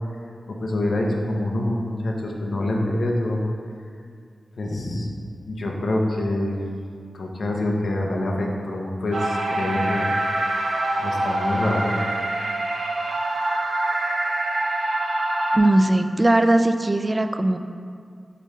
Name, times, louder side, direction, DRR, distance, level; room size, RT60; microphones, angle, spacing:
voice 1, 0.5-3.4 4.6-5.1 5.5-6.6 7.1-10.1 11.0-12.0, left 1 dB, 70° left, 0 dB, 0.8 m, -25 dB
sound 1, 9.1-15.6, right 1 dB, 80° right, 0.8 m, -25 dB
voice 2, 15.5-17.6, right 1 dB, 30° right, 8 dB, 0.3 m, -19 dB
5.3 x 5.0 x 4.2 m, 2.2 s
wide cardioid pair, 70°, 0 cm